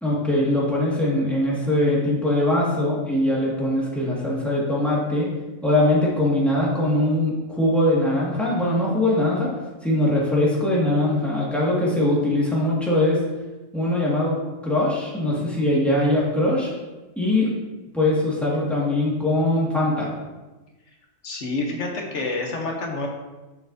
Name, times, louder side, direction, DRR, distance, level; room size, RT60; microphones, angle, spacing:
voice 1, 0.0-5.3 5.6-9.5 9.8-13.2 13.7-14.4 14.6-16.7 17.2-17.5 17.9-20.1, left 1 dB, ahead, -7 dB, 1.7 m, -21 dB
voice 2, 21.2-23.1, left 2 dB, 60° left, 1 dB, 1.3 m, -28 dB
7.6 x 5.9 x 2.7 m, 1.1 s
omnidirectional pair, 1.5 m